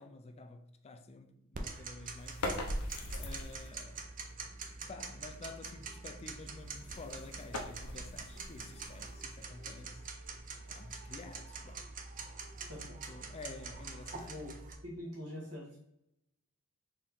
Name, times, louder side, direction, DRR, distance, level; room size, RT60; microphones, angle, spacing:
voice 1, 0.0-2.8 3.2-4.1 4.9-10.0 10.7-11.9 12.8-14.4, left 3 dB, 30° left, 0.3 m, -50 dB
Tick-tock, 1.5-14.7, right 4 dB, 40° right, 0.5 m, -45 dB
sound 1, 2.2-3.8 6.5-9.5, left 1 dB, 90° left, 0.8 m, -41 dB
voice 2, 14.1-14.6 14.8-15.8, left 1 dB, 85° right, 1.6 m, -44 dB
4.4 x 3.0 x 3.6 m
head